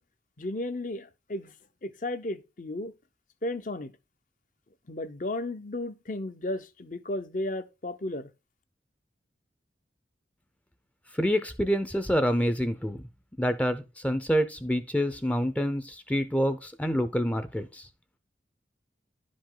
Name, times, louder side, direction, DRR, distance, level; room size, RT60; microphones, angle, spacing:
voice 1, 0.4-1.5 1.8-2.9 3.4-3.9 4.9-8.3, left 1 dB, 45° left, 0.7 m, -34 dB
voice 2, 11.1-13.0 13.4-17.9, equal, 10° left, 0.5 m, -27 dB
10.5 x 5.2 x 3.8 m
head